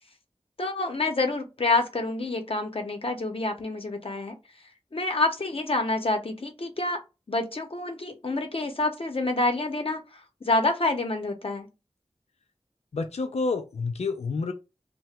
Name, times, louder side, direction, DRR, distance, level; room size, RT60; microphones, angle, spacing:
voice 1, 0.6-4.4 4.9-7.0 7.3-10.0 10.4-11.7, left 2 dB, 60° left, 0.7 m, -27 dB
voice 2, 12.9-14.5, left 4 dB, 85° left, 0.4 m, -29 dB
2.8 x 2.1 x 3.3 m
wide cardioid pair, 60°, 11 cm